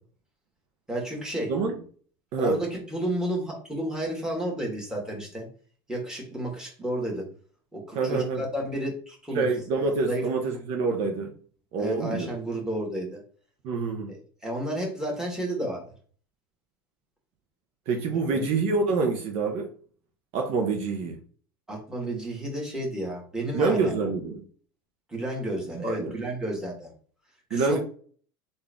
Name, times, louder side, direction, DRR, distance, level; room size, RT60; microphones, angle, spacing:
voice 1, 0.9-1.5 2.4-5.5 5.9-7.3 7.7-9.5 10.0-10.3 11.8-13.2 14.1-15.9 18.3-18.5 21.7-23.9 25.1-26.9 27.5-27.8, right 1 dB, 5° right, 1.8 m, -31 dB
voice 2, 7.9-8.4 9.3-11.4 11.7-12.3 13.6-14.1 17.9-19.7 20.3-21.2 23.5-24.4 25.7-26.2 27.5-27.8, right 4 dB, 55° right, 0.9 m, -26 dB
3.6 x 2.6 x 3.5 m
supercardioid pair, 105°, 12 cm